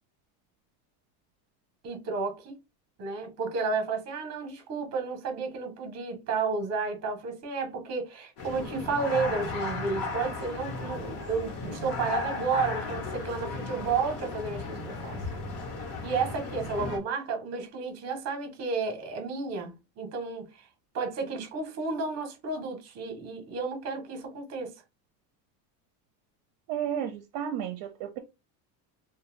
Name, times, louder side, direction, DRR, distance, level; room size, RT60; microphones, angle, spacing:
voice 1, 1.8-2.5 3.0-15.2 16.0-20.7 20.9-24.7, right 4 dB, 30° right, 0.8 m, -32 dB
sound 1, 8.4-17.0, left 3 dB, 55° left, 1.1 m, -35 dB
voice 2, 26.7-28.2, right 9 dB, 60° right, 0.6 m, -32 dB
2.5 x 2.2 x 3.1 m
cardioid pair, 145°, 49 cm